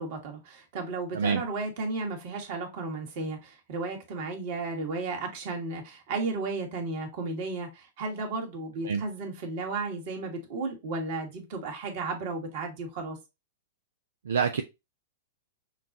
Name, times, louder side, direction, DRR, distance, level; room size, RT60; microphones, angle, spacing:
voice 1, 0.0-13.2, right 3 dB, 55° right, 1.7 m, -34 dB
voice 2, 14.3-14.6, right 6 dB, 75° right, 0.4 m, -26 dB
5.7 x 2.4 x 2.6 m
hypercardioid pair, 110°, 0 cm